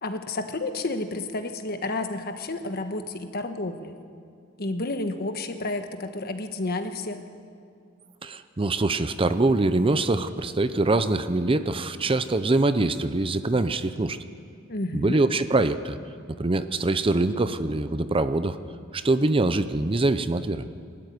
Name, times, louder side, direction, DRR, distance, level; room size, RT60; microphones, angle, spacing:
voice 1, 0.0-4.0 4.6-7.2 14.7-15.2, left 2 dB, 50° left, 7 dB, 1.4 m, -31 dB
voice 2, 8.2-14.2 14.9-16.0 16.4-18.6 18.9-20.6, right 2 dB, 25° right, 11 dB, 0.6 m, -24 dB
21.0 x 13.0 x 9.7 m, 2.2 s
head